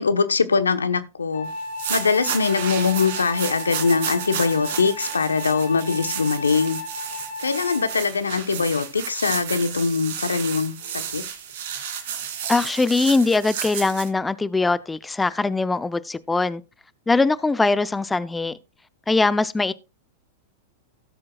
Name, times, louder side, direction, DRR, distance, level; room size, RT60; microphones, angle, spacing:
voice 1, 0.0-1.5 1.9-6.8 7.4-10.7 11.1-11.2, left 5 dB, 90° left, 1.0 m, -22 dB
Wind instrument woodwind instrument, 1.3-8.1, left 2 dB, 70° left, 7.1 m, -34 dB
sound 1, 1.6-14.1, right 8 dB, 60° right, 2.3 m, -32 dB
voice 2, 12.5-16.6 17.1-18.6 19.1-19.7, left 3 dB, 10° left, 0.5 m, -21 dB
17.0 x 7.6 x 2.3 m
hypercardioid pair, 100°, 0 cm